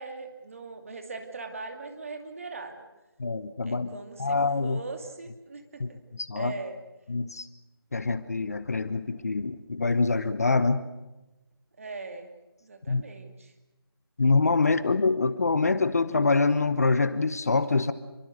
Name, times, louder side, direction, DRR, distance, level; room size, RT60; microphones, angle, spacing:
voice 1, 0.0-2.9 3.6-6.0 6.4-6.8 11.8-12.3 12.6-13.5, right 3 dB, 35° right, 5 dB, 2.5 m, -40 dB
voice 2, 3.2-4.8 5.8-6.5 7.1-7.5 7.9-10.8 12.9-13.0 14.2-17.9, left 3 dB, 40° left, 13 dB, 1.0 m, -25 dB
27.0 x 23.5 x 6.5 m, 1.0 s
figure-of-eight pair, 170°, 13 cm